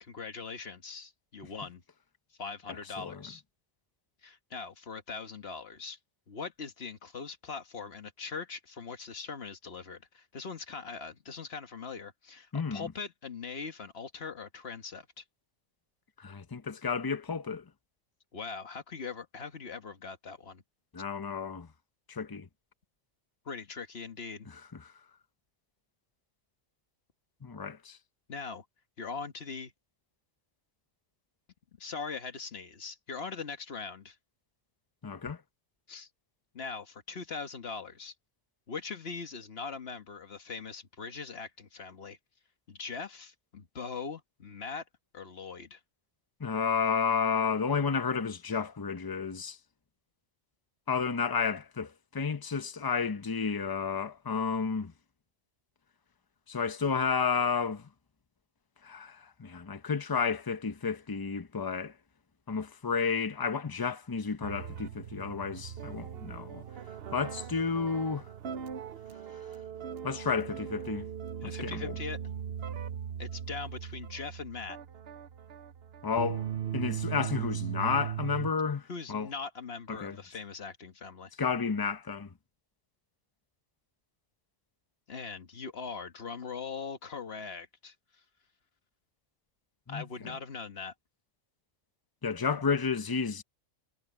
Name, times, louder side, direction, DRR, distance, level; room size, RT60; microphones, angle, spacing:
voice 1, 0.0-1.8 2.4-3.4 4.2-6.0 6.3-15.2 18.3-20.6 23.4-24.5 28.3-28.6 29.0-29.7 31.8-34.2 35.9-36.1 36.5-38.1 38.7-42.2 42.7-44.8 45.1-45.8 71.4-72.2 73.2-74.8 78.9-81.3 85.1-87.9 89.9-90.9, left 5 dB, 60° left, 1.7 m, -41 dB
voice 2, 12.5-12.9 16.2-17.6 20.9-21.7 22.1-22.5 24.5-24.9 27.4-28.0 35.0-35.4 46.4-49.6 50.9-54.9 56.5-57.9 58.8-61.9 62.5-66.6 67.1-68.3 70.0-71.1 71.4-72.0 76.0-76.5 76.7-79.3 79.9-80.2 81.4-82.3 89.9-90.3 92.2-93.4, left 5 dB, 20° left, 0.7 m, -31 dB
sound 1, 64.4-78.5, right 9 dB, 60° right, 1.0 m, -39 dB
omnidirectional pair, 1.2 m